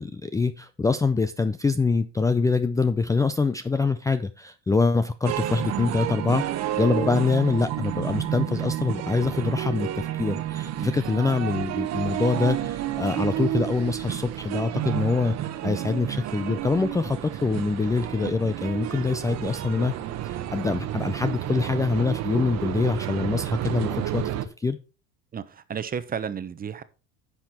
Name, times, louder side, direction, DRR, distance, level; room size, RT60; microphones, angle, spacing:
voice 1, 0.0-6.5 6.8-15.4 15.6-19.9 20.2-24.8, left 4 dB, 10° left, 0.4 m, -25 dB
sound 1, 5.2-24.5, right 12 dB, 55° right, 1.0 m, -30 dB
voice 2, 25.3-26.8, right 7 dB, 30° right, 0.9 m, -32 dB
10.5 x 5.9 x 4.3 m
supercardioid pair, 100°, 31 cm